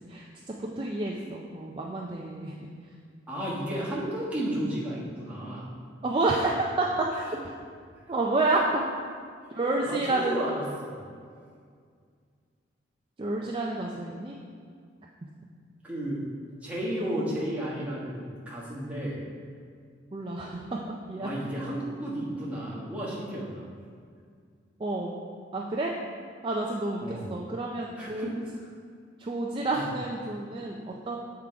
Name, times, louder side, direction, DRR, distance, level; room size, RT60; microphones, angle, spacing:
voice 1, 0.6-2.7 6.0-7.2 8.1-8.8 9.5-10.4 13.2-14.4 20.1-21.3 24.8-25.2 25.5-25.9 26.4-28.4 29.2-31.2, right 2 dB, 25° right, -2 dB, 0.4 m, -29 dB
voice 2, 3.3-5.7 9.4-11.0 15.8-16.2 16.6-19.2 21.2-23.7 27.0-27.3 28.0-28.3 29.7-29.8, right 1 dB, 5° right, -7 dB, 1.3 m, -33 dB
7.4 x 3.7 x 4.6 m, 2.1 s
head